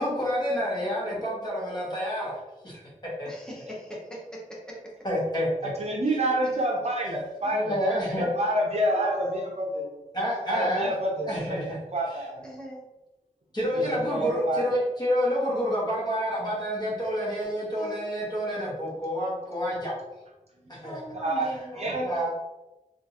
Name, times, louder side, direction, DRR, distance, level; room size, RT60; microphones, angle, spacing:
voice 1, 0.0-2.4 2.6-3.3 5.0-5.7 7.5-8.3 10.1-10.9 11.2-11.8 13.5-19.9 20.7-21.0 22.0-22.3, equal, 30° left, -6 dB, 1.3 m, -28 dB
voice 2, 0.5-1.3 3.2-4.8 6.4-6.5 8.9-10.0 11.1-11.4 12.4-12.9 14.0-14.5 17.8-18.1 20.8-22.3, right 1 dB, 5° left, -3 dB, 0.8 m, -41 dB
voice 3, 5.6-9.9 10.5-12.5 13.7-14.7 21.2-21.5 21.8-22.1, right 1 dB, 50° right, -1 dB, 0.6 m, -28 dB
3.5 x 2.5 x 2.8 m, 1.0 s
wide cardioid pair, 110°, 14 cm